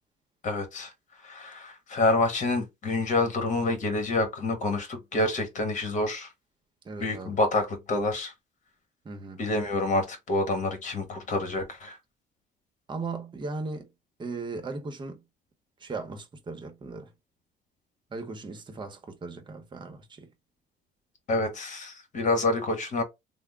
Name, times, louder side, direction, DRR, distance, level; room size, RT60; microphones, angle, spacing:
voice 1, 0.4-0.9 1.2-6.3 7.0-8.3 9.4-12.0 21.3-23.0, left 2 dB, 45° left, 1.3 m, -27 dB
voice 2, 6.8-7.4 9.0-9.4 12.9-13.9 14.2-15.2 15.8-17.1 18.1-20.3, right 3 dB, 25° right, 0.9 m, -37 dB
3.5 x 2.1 x 3.5 m
cardioid pair, 110°, 17 cm